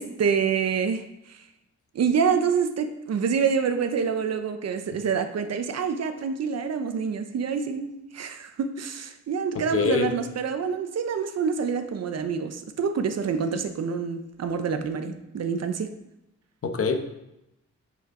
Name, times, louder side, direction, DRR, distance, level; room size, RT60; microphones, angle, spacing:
voice 1, 0.0-1.4 1.9-15.9, right 6 dB, 60° right, 9 dB, 0.8 m, -27 dB
voice 2, 9.5-10.1 16.6-17.0, left 5 dB, 50° left, 6 dB, 0.9 m, -24 dB
8.3 x 7.8 x 3.8 m, 0.88 s
wide cardioid pair, 155°, 29 cm